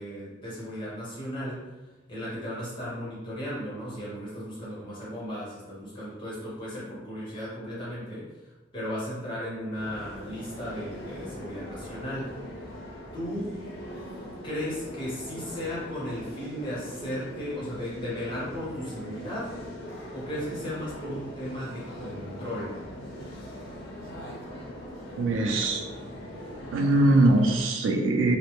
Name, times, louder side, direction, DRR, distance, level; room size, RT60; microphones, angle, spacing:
voice 1, 0.0-1.7 2.1-8.3 8.7-12.3 13.1-13.5 14.4-19.8 20.1-22.8, equal, 25° left, -8 dB, 0.9 m, -35 dB
sound 1, 9.7-27.6, equal, 80° left, 0.6 m, -41 dB
voice 2, 25.2-25.8 26.7-28.4, right 2 dB, 90° right, 3 dB, 0.4 m, -22 dB
2.2 x 2.0 x 2.9 m, 1.1 s
head